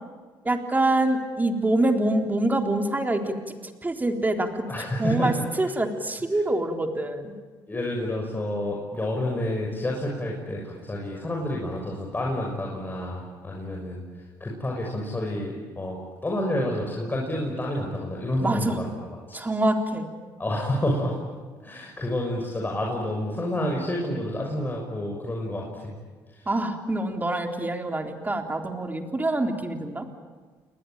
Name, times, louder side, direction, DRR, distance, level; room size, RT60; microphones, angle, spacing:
voice 1, 0.4-3.3 3.8-4.6 5.0-7.3 18.4-18.8 19.3-20.1 26.5-30.1, right 1 dB, 20° right, 4 dB, 3.8 m, -25 dB
voice 2, 4.7-5.4 7.7-14.0 14.4-19.4 20.4-21.1 21.6-26.0 26.3-26.5, left 1 dB, 20° left, -1 dB, 6.3 m, -29 dB
29.0 x 20.5 x 9.0 m, 1.4 s
supercardioid pair, 70°, 9 cm